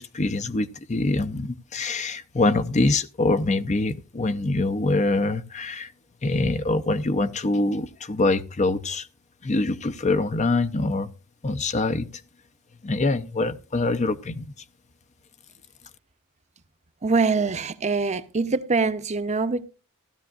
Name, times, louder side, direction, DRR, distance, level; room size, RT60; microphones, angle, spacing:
voice 1, 0.0-5.9 6.2-9.1 9.4-11.1 11.4-12.1 12.8-14.5, left 2 dB, 35° left, 0.6 m, -24 dB
voice 2, 17.0-19.7, right 4 dB, 30° right, 0.8 m, -24 dB
16.0 x 13.0 x 2.4 m
head